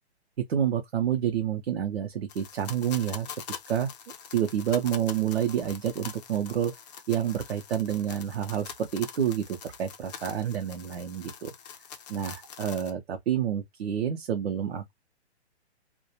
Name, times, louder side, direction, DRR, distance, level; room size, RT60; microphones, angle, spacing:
voice 1, 0.5-3.3 3.7-3.9 4.3-6.7 7.1-11.5 12.1-14.9, right 9 dB, 65° right, 0.6 m, -28 dB
sound 1, 2.3-12.9, left 7 dB, 40° left, 0.6 m, -44 dB
2.3 x 2.1 x 2.7 m
figure-of-eight pair, 120°, 34 cm